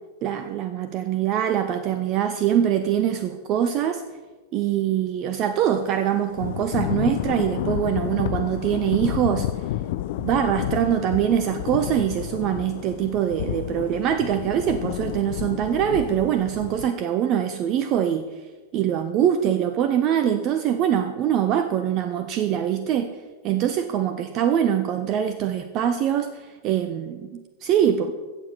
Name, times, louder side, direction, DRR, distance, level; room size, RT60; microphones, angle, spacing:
voice 1, 0.2-4.0 4.5-9.5 10.2-18.3 18.7-23.1 23.4-28.1, right 10 dB, 35° right, 10 dB, 0.7 m, -23 dB
Thunder / Rain, 6.4-16.9, left 14 dB, 50° left, 0.5 m, -30 dB
15.5 x 7.3 x 6.8 m, 1.3 s
figure-of-eight pair, 90°, 0 cm